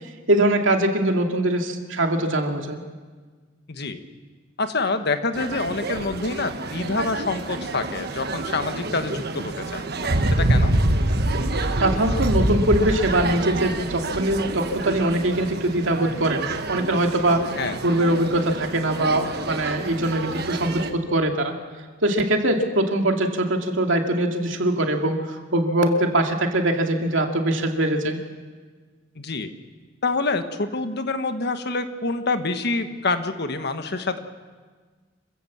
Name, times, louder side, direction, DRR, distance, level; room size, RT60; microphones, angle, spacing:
voice 1, 0.3-2.8 11.8-17.5 17.8-21.5 22.0-28.2, right 1 dB, 85° right, 3 dB, 2.4 m, -22 dB
voice 2, 3.7-4.0 4.6-9.8 10.3-10.7 17.5-17.8 29.1-29.5 30.0-34.2, left 3 dB, 60° left, 8 dB, 1.4 m, -26 dB
sound 1, 5.3-20.9, right 2 dB, 55° right, 1.4 m, -27 dB
26.5 x 16.0 x 7.4 m, 1.5 s
head